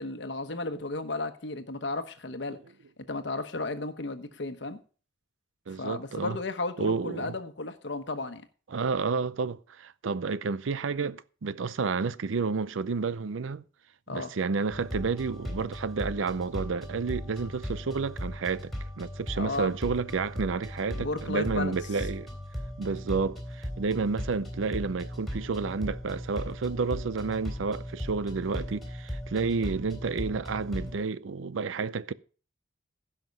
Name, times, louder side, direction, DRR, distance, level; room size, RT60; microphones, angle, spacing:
voice 1, 0.0-2.6 3.0-4.8 5.8-8.5 14.1-14.3 19.4-19.7 20.9-21.8, left 2 dB, 65° left, 1.1 m, -34 dB
voice 2, 5.7-6.4 6.8-7.3 8.7-13.6 14.1-22.3 22.8-32.1, right 4 dB, 90° right, 0.5 m, -30 dB
sound 1, 14.7-31.0, equal, ahead, 3.4 m, -38 dB
15.5 x 5.9 x 5.3 m
head